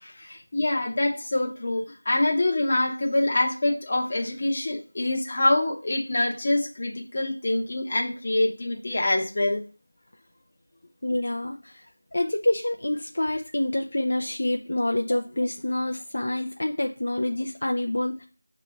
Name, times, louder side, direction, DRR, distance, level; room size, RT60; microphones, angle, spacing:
voice 1, 0.0-9.6, left 2 dB, 30° left, 0 dB, 0.9 m, -25 dB
voice 2, 11.0-11.9 12.1-18.3, left 1 dB, 50° left, 2 dB, 0.6 m, -27 dB
5.8 x 3.1 x 5.6 m, 0.37 s
figure-of-eight pair, 180°, 0 cm